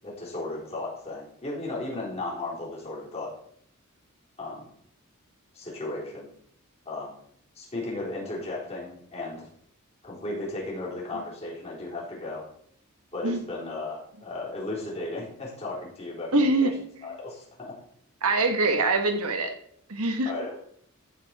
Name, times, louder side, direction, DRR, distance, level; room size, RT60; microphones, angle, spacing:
voice 1, 0.0-3.3 4.4-4.7 5.5-6.3 6.9-7.1 7.6-9.5 10.0-12.4 13.1-16.7 17.0-17.7 20.2-20.6, left 2 dB, 30° left, -5 dB, 4.1 m, -35 dB
voice 2, 16.3-16.7 18.2-19.5 19.9-20.3, right 2 dB, 80° right, 6 dB, 1.3 m, -23 dB
15.0 x 5.1 x 4.7 m, 0.66 s
head